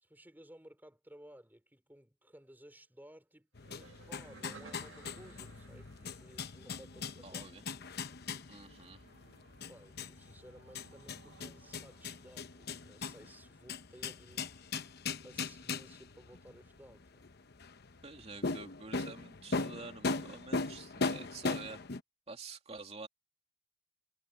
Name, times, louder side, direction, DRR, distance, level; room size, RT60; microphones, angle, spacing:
voice 1, 0.0-7.5 9.3-9.4 9.7-15.0 15.2-17.3, equal, 10° right, 3.5 m, -57 dB
sound 1, 3.5-22.0, left 4 dB, 55° left, 0.9 m, -40 dB
sound 2, 3.6-7.2 8.6-13.2, right 4 dB, 90° right, 1.9 m, -60 dB
voice 2, 7.2-7.7 8.5-9.0 18.0-21.8 22.3-23.1, right 3 dB, 30° right, 2.7 m, -48 dB
head